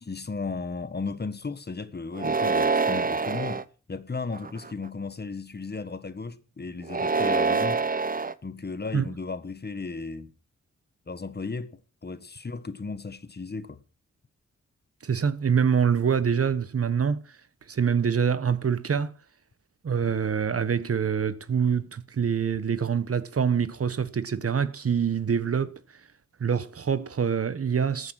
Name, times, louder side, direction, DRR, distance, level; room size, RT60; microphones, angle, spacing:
voice 1, 0.0-7.8 8.4-10.3 11.1-13.8, left 4 dB, 35° left, 1.4 m, -35 dB
sound 1, 2.2-3.6 4.3-4.9 6.8-8.3, right 4 dB, 30° right, 0.8 m, -25 dB
voice 2, 15.0-17.4 17.7-19.1 19.8-25.7 26.4-28.1, right 7 dB, 50° right, 1.1 m, -25 dB
14.0 x 9.8 x 6.0 m
cardioid pair, 70°, 29 cm